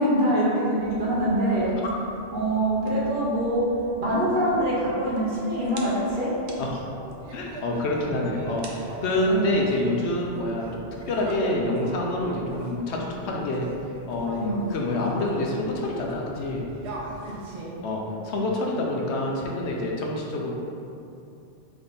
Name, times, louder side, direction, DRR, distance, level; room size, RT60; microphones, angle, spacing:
voice 1, 0.0-1.8 2.3-3.7 4.0-6.4 9.3-9.6 14.4-14.6 17.2-17.8, right 1 dB, 50° right, -6 dB, 1.1 m, -24 dB
sound 1, 0.7-17.4, right 2 dB, 90° right, 0.9 m, -43 dB
voice 2, 7.3-13.7 14.1-16.6 17.8-20.5, left 1 dB, 85° left, -1 dB, 0.9 m, -27 dB
3.6 x 3.3 x 4.0 m, 2.7 s
omnidirectional pair, 1.1 m